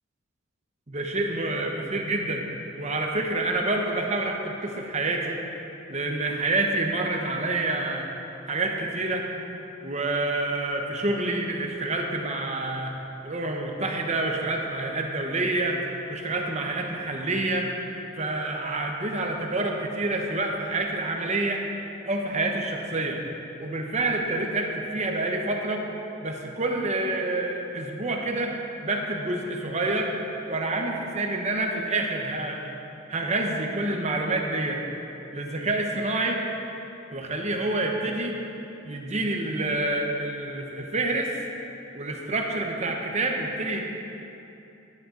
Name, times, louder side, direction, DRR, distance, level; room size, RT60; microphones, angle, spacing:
voice 1, 0.9-2.5 2.8-5.4 5.9-8.1 8.5-9.3 9.8-13.0 13.2-15.8 16.1-17.7 18.2-21.6 22.0-23.2 23.6-25.8 26.2-28.5 28.8-30.1 30.5-32.7 33.1-34.8 35.3-36.4 37.1-38.3 38.8-41.3 41.9-43.8, right 2 dB, 35° right, 2 dB, 1.0 m, -27 dB
13.5 x 10.0 x 3.9 m, 2.9 s
head